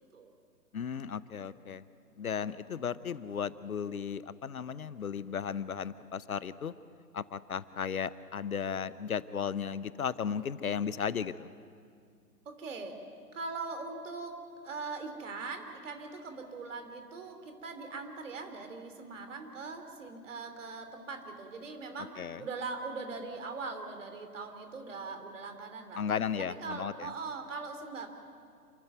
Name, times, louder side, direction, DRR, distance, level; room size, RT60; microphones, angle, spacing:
voice 1, 0.7-1.8 2.2-6.7 7.1-11.5 22.2-22.4 26.0-27.1, left 7 dB, 60° left, 17 dB, 0.8 m, -35 dB
voice 2, 12.4-13.0 13.3-14.3 14.6-26.0 26.4-28.1, right 4 dB, 50° right, 6 dB, 3.1 m, -41 dB
28.0 x 13.0 x 9.1 m, 2.3 s
figure-of-eight pair, 125°, 47 cm